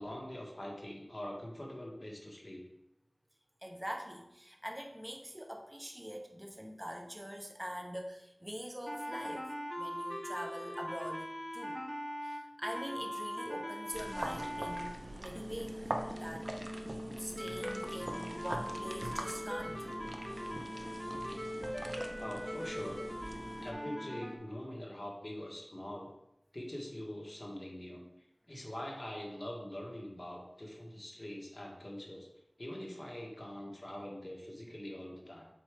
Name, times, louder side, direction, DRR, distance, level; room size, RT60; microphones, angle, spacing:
voice 1, 0.0-2.6 22.2-23.0 23.6-26.1 26.5-28.1 28.5-32.3 32.6-35.5, left 1 dB, 40° left, -1 dB, 1.6 m, -43 dB
voice 2, 3.6-9.5 9.8-11.8 12.2-15.8 16.1-16.5 17.2-19.9, equal, 10° right, 2 dB, 1.1 m, -44 dB
sound 1, 8.9-14.9 15.4-24.4, equal, 5° left, 0.9 m, -41 dB
sound 2, 13.9-23.7, right 1 dB, 60° right, 0.7 m, -43 dB
7.4 x 4.4 x 3.6 m, 0.86 s
wide cardioid pair, 50°, 0 cm